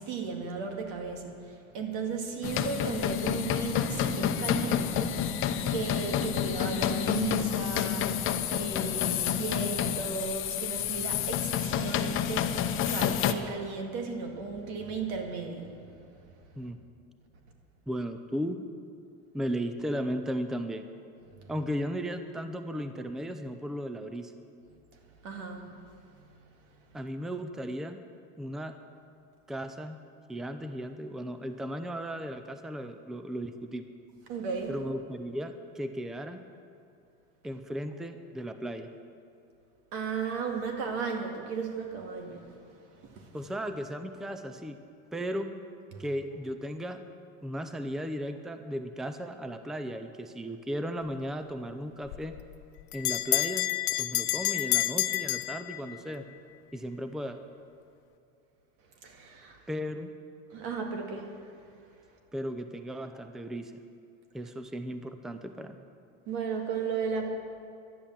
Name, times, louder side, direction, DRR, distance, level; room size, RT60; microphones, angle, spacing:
voice 1, 0.0-5.3 5.7-8.3 8.5-15.9 21.4-21.5 25.2-25.8 26.1-26.3 26.7-27.0 34.3-34.7 39.9-42.6 43.0-43.3 59.0-59.6 60.5-61.3 66.3-67.3, right 5 dB, 75° right, 2 dB, 2.2 m, -35 dB
sound 1, 2.4-13.3, left 9 dB, 40° left, 0.8 m, -29 dB
voice 2, 17.9-18.7 19.3-20.9 21.5-24.3 26.9-28.0 28.4-28.8 29.5-30.0 30.3-33.9 34.7-36.4 37.4-38.9 43.3-44.8 45.1-45.5 46.0-47.0 47.4-52.4 52.9-53.7 54.0-56.2 56.7-57.4 59.7-60.1 62.3-63.7 64.3-65.8, equal, ahead, 8 dB, 0.5 m, -35 dB
Bell, 52.1-56.2, left 18 dB, 90° left, 0.6 m, -29 dB
11.5 x 10.5 x 7.4 m, 2.6 s
supercardioid pair, 130°, 32 cm